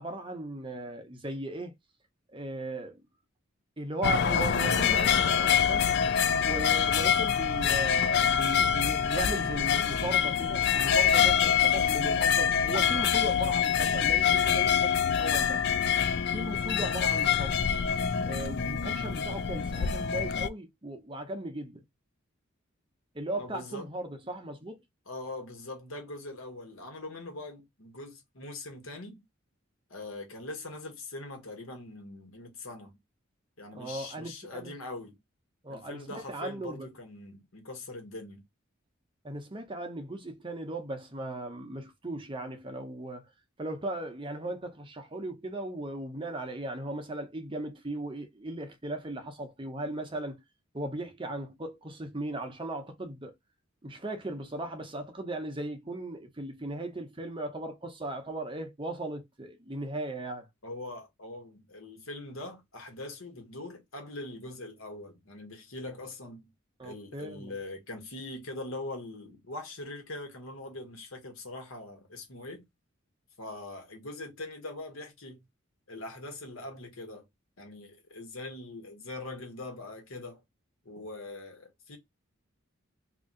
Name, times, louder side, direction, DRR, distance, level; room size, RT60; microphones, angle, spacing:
voice 1, 0.0-1.8 2.3-3.0 3.8-6.0 6.4-15.6 16.3-17.7 18.2-21.8 23.1-24.8 33.7-34.7 35.6-36.9 39.2-43.2 43.6-50.4 50.7-53.3 53.8-60.5 66.8-67.5, right 1 dB, 25° right, 0.8 m, -37 dB
sound 1, 4.0-20.5, left 8 dB, 55° left, 0.4 m, -25 dB
voice 2, 23.4-23.9 25.1-29.2 29.9-33.0 33.6-35.2 35.7-38.4 60.6-66.5 66.8-72.6 73.4-75.4 75.9-77.2 77.6-80.4 80.8-82.0, left 2 dB, 85° left, 1.4 m, -42 dB
2.9 x 2.6 x 3.8 m
head